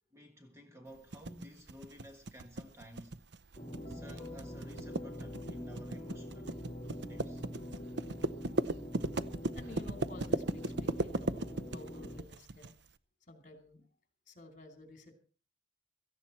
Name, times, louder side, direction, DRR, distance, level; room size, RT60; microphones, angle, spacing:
voice 1, 0.1-3.2 3.9-6.6 7.1-7.4, equal, 15° right, 1.4 m, -53 dB
sound 1, 1.1-12.7, right 2 dB, 60° right, 0.7 m, -36 dB
sound 2, 3.6-12.2, equal, 25° left, 2.9 m, -44 dB
voice 2, 9.5-12.7 13.3-13.9 14.3-15.1, left 2 dB, 40° left, 3.1 m, -53 dB
17.0 x 14.5 x 4.4 m
head